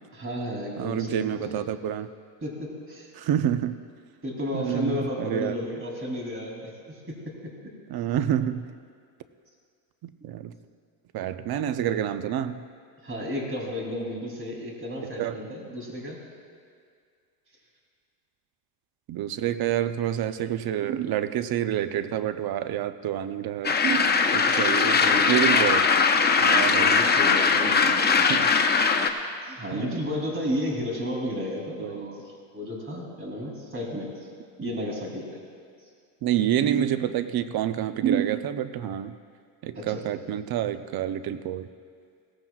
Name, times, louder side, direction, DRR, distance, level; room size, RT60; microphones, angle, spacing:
voice 1, 0.1-1.6 2.4-3.1 4.2-7.5 10.2-10.3 13.0-16.2 24.1-25.3 26.7-28.4 29.4-34.1 34.6-35.4 39.7-40.0, left 1 dB, 25° right, -1 dB, 3.0 m, -33 dB
voice 2, 0.8-2.1 3.1-3.8 4.5-5.5 7.9-8.7 10.0-10.5 11.1-12.6 15.2-15.4 19.1-25.0 25.3-25.9 26.4-27.0 28.3-28.5 29.7-29.9 31.8-32.1 34.6-34.7 36.2-39.2 39.6-41.7, right 10 dB, 50° right, 12 dB, 0.6 m, -28 dB
sound 1, 23.6-29.1, left 5 dB, 20° left, 0.7 m, -20 dB
17.5 x 15.0 x 2.4 m, 2.1 s
cardioid pair, 110°, 50 cm